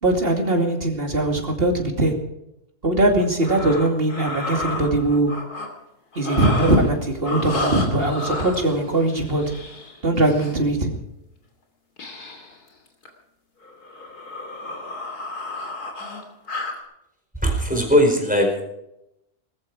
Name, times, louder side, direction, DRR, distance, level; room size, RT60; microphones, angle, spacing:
voice 1, 0.0-2.2 2.8-5.3 6.2-9.4 10.0-10.9, right 2 dB, 35° right, 3 dB, 2.8 m, -20 dB
sound 1, 3.2-5.7 6.1-7.0 7.2-10.6 12.0-12.6 12.9-13.1 13.6-16.8, left 2 dB, 80° left, 3.4 m, -32 dB
voice 2, 17.4-18.6, equal, 5° right, 2 dB, 4.8 m, -19 dB
20.5 x 14.0 x 4.8 m, 0.84 s
omnidirectional pair, 1.6 m